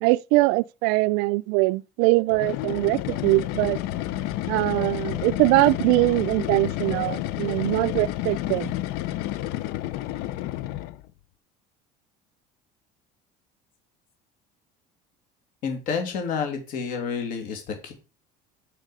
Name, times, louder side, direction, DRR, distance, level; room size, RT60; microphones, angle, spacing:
voice 1, 0.0-3.8 4.5-8.7, right 23 dB, 85° right, 0.4 m, -22 dB
sound 1, 2.3-11.1, left 14 dB, 70° left, 0.6 m, -30 dB
voice 2, 15.6-17.9, left 6 dB, 50° left, 2.7 m, -29 dB
6.5 x 6.1 x 4.9 m
cardioid pair, 170°, 17 cm